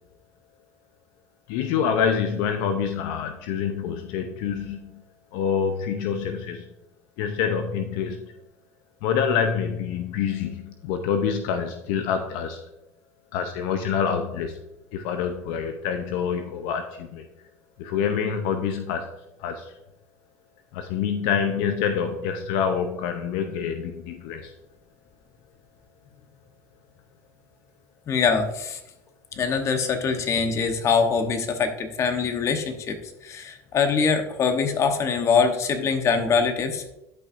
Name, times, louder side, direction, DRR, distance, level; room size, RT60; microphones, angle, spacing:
voice 1, 1.5-5.0 5.3-6.7 7.2-8.2 9.0-12.6 13.3-14.6 14.9-17.2 17.8-19.1 19.4-19.7 20.7-24.5, left 7 dB, 75° left, 6 dB, 0.7 m, -26 dB
voice 2, 28.1-28.8 29.4-36.8, left 5 dB, 40° left, 7 dB, 1.1 m, -23 dB
11.5 x 5.5 x 2.6 m, 0.88 s
supercardioid pair, 100°, 7 cm